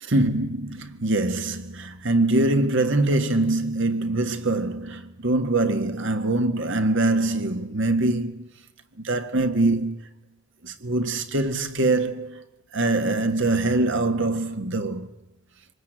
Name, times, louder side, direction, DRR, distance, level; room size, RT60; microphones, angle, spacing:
voice 1, 0.0-8.5 9.0-10.1 10.6-12.4 12.7-15.1, right 2 dB, 60° right, 1.7 m, -23 dB
25.0 x 20.0 x 8.9 m
head